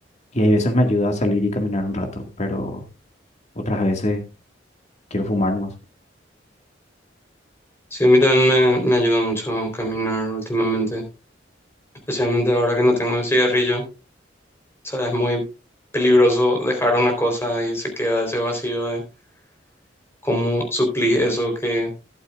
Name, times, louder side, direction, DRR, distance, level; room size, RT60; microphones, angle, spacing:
voice 1, 0.3-2.8 3.6-4.2 5.1-5.7, left 1 dB, 40° left, 4 dB, 1.9 m, -22 dB
voice 2, 7.9-11.0 12.1-13.8 14.8-15.4 15.9-19.0 20.2-21.9, equal, 15° left, 3 dB, 3.9 m, -20 dB
13.0 x 11.5 x 2.4 m, 0.28 s
head